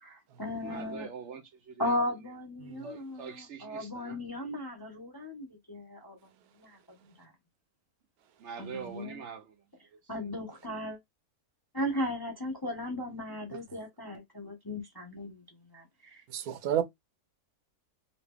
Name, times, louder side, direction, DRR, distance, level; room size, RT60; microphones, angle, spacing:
voice 1, 0.0-1.1 1.8-6.3 6.6-7.3 8.6-9.2 10.1-11.0 11.7-15.4 15.7-16.2, left 1 dB, 25° left, 0.6 m, -36 dB
voice 2, 0.6-2.0 2.8-4.2 8.4-9.5, right 6 dB, 60° right, 0.8 m, -43 dB
voice 3, 16.3-16.8, right 10 dB, 80° right, 1.1 m, -30 dB
3.0 x 2.8 x 3.4 m
omnidirectional pair, 1.6 m